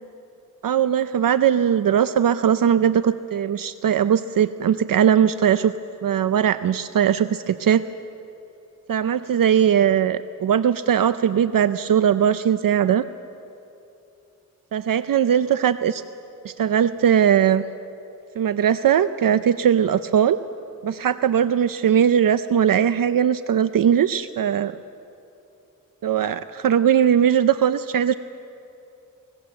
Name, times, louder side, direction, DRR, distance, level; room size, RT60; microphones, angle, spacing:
voice 1, 0.6-5.7 6.0-7.8 8.9-13.0 14.7-16.0 16.4-17.6 18.4-20.4 20.8-24.7 26.0-28.1, right 9 dB, 75° right, 12 dB, 0.6 m, -19 dB
25.0 x 20.5 x 7.8 m, 2.7 s
cardioid pair, 55°, 34 cm